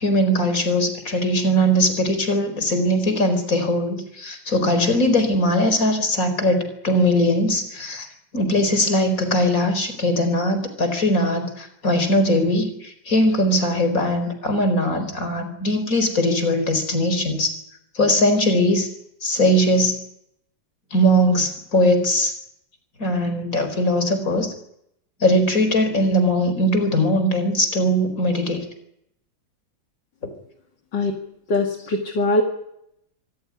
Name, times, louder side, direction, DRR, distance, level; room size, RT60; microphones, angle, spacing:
voice 1, 0.0-8.1 8.3-17.6 17.9-18.9 19.2-20.0 20.9-22.3 23.0-24.5 25.2-28.6, equal, 45° left, 8 dB, 4.9 m, -20 dB
voice 2, 31.5-32.4, left 2 dB, 65° left, 2 dB, 2.7 m, -21 dB
25.5 x 15.0 x 9.9 m, 0.76 s
omnidirectional pair, 2.1 m